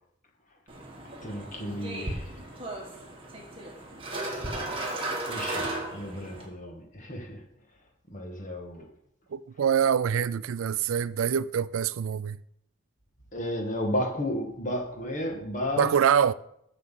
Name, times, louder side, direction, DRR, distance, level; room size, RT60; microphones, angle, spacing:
sound 1, 0.7-6.5, right 2 dB, 25° right, 1.9 m, -35 dB
voice 1, 1.2-2.5 5.3-7.4 8.1-8.9 13.3-15.9, left 1 dB, 40° left, 1.8 m, -33 dB
voice 2, 9.3-12.4 15.8-16.3, right 8 dB, 90° right, 0.4 m, -25 dB
7.9 x 6.1 x 7.5 m
head